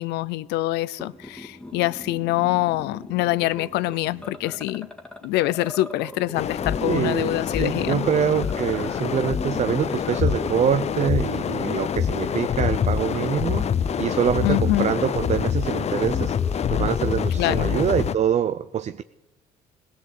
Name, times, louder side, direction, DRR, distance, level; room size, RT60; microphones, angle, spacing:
voice 1, 0.0-4.9 5.2-8.1 14.4-14.9 17.4-17.7, left 17 dB, 90° left, 0.7 m, -25 dB
sound 1, 1.0-18.2, left 1 dB, 5° left, 1.9 m, -39 dB
sound 2, 6.4-18.2, left 8 dB, 40° left, 0.6 m, -26 dB
voice 2, 6.8-13.7 14.0-16.4 16.7-19.0, right 9 dB, 40° right, 0.7 m, -25 dB
19.5 x 17.5 x 8.4 m
cardioid pair, 110°, 17 cm